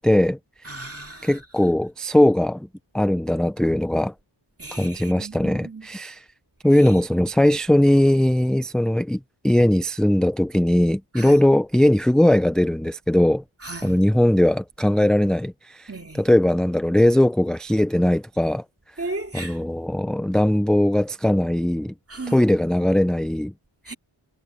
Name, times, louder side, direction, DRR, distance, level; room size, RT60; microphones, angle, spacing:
voice 1, 0.0-0.8 1.2-2.7 2.9-4.1 4.7-6.2 6.6-13.4 13.8-15.9 16.2-18.6 19.3-21.9 22.3-23.5 23.9-24.0, left 1 dB, ahead, 0.4 m, -20 dB
voice 2, 0.6-1.4 4.6-5.9 6.8-6.9 11.1-11.4 13.6-14.0 15.9-16.2 19.0-19.6 22.1-22.5 23.9-24.0, right 2 dB, 30° right, 2.5 m, -35 dB
wide cardioid pair, 90°, 50 cm